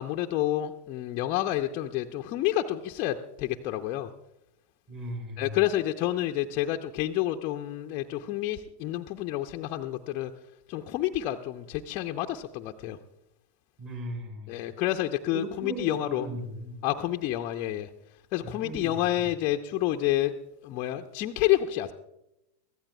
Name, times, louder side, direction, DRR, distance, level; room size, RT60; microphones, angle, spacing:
voice 1, 0.0-4.1 5.4-10.3 10.7-13.0 14.5-16.3 16.8-17.9 18.3-20.3 20.6-21.9, left 13 dB, 40° left, 5 dB, 0.6 m, -29 dB
voice 2, 4.9-5.6 13.8-14.6 15.3-16.7 18.4-18.9 19.2-19.3, right 1 dB, 35° right, 3 dB, 4.8 m, -37 dB
23.0 x 15.5 x 2.3 m, 0.89 s
figure-of-eight pair, 90°, 0 cm